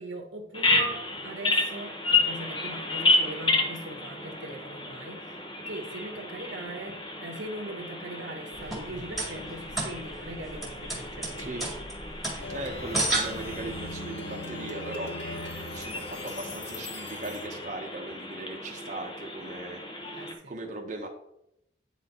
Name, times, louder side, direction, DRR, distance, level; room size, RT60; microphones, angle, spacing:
voice 1, 0.0-11.9 20.1-20.5, right 1 dB, 85° right, 3 dB, 1.3 m, -41 dB
Bird vocalization bird call bird song, 0.5-20.3, left 2 dB, 25° left, 0.8 m, -32 dB
sound 1, 8.5-13.9, right 2 dB, ahead, 1.9 m, -33 dB
Plucked string instrument, 12.4-17.7, left 2 dB, 65° left, 0.8 m, -41 dB
voice 2, 12.5-15.1 15.7-19.8 20.1-21.1, right 2 dB, 40° right, 0 dB, 1.0 m, -38 dB
9.1 x 4.2 x 4.4 m, 0.80 s
head